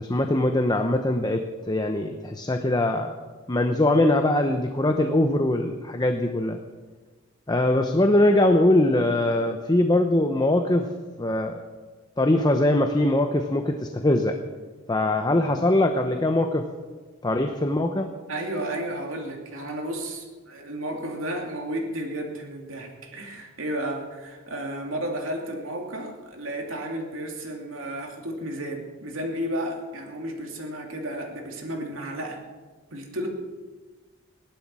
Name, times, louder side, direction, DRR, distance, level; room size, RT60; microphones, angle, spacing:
voice 1, 0.0-3.1 3.5-6.6 7.5-10.9 11.2-11.6 12.2-14.3 14.9-16.6 17.2-18.1, left 1 dB, 20° left, 5 dB, 0.9 m, -22 dB
voice 2, 18.3-32.4 32.9-33.3, right 1 dB, 80° right, 1 dB, 2.8 m, -32 dB
18.0 x 11.5 x 6.2 m, 1.4 s
head